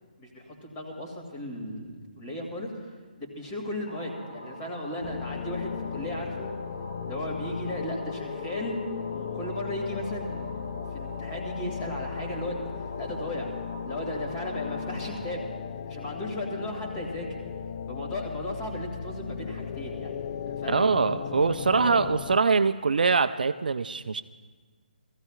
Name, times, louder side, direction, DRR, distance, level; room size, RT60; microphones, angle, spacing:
voice 1, 0.2-2.9 3.2-6.5 7.0-8.8 9.1-12.5 13.0-13.5 13.8-15.4 15.9-17.3 17.9-20.1 20.5-21.1 21.7-22.1, left 1 dB, 20° left, 0 dB, 2.5 m, -36 dB
sound 1, 3.9-15.3, equal, 80° left, 2.9 m, -45 dB
sound 2, 5.0-22.4, left 7 dB, 35° left, 0.4 m, -36 dB
voice 2, 20.7-24.2, right 4 dB, 65° right, 11 dB, 0.5 m, -23 dB
22.0 x 15.0 x 2.5 m, 1.5 s
figure-of-eight pair, 150°, 5 cm